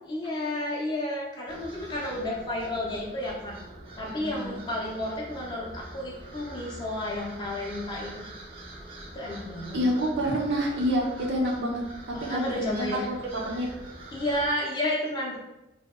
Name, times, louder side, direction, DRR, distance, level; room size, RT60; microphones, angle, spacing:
voice 1, 0.1-3.6 4.0-8.2 9.1-9.8 12.1-13.1 14.1-15.4, left 1 dB, 25° left, -4 dB, 0.4 m, -31 dB
sound 1, 1.5-14.5, right 2 dB, 30° right, 0.5 m, -44 dB
voice 2, 4.0-4.6 9.7-11.8 12.2-13.7, equal, 80° right, -1 dB, 0.7 m, -28 dB
2.7 x 2.1 x 3.5 m, 0.96 s
head